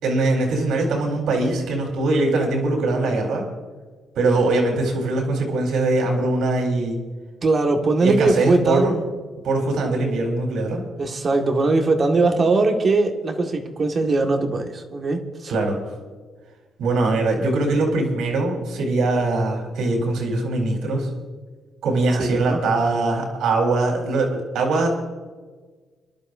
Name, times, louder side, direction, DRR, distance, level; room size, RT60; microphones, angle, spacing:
voice 1, 0.0-3.4 4.2-7.0 8.0-9.0 9.4-10.8 15.5-15.8 16.8-21.1 21.8-24.9, right 2 dB, 80° right, 4.4 m, -22 dB
voice 2, 7.4-9.1 11.0-15.5 22.2-22.6, right 3 dB, 40° right, 1.9 m, -20 dB
27.0 x 11.5 x 2.7 m
cardioid pair, 90°, 0 cm